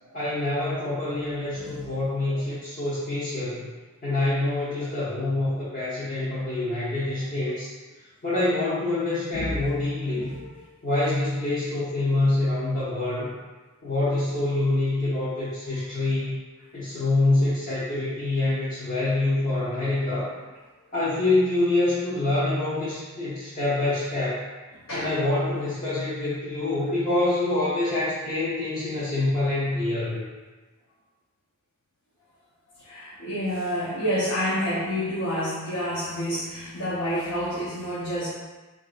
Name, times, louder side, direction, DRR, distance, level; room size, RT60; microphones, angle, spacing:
voice 1, 0.1-3.7 4.0-7.7 8.2-10.3 10.8-13.3 13.8-16.4 16.7-20.3 20.9-24.4 24.9-30.2, left 2 dB, 40° left, -11 dB, 0.8 m, -26 dB
voice 2, 1.6-2.0 2.3-2.4 4.8-4.9 9.3-9.5 10.1-10.4 24.9-25.1 32.8-38.3, equal, 70° left, -9 dB, 0.7 m, -29 dB
3.9 x 2.6 x 2.4 m, 1.3 s
head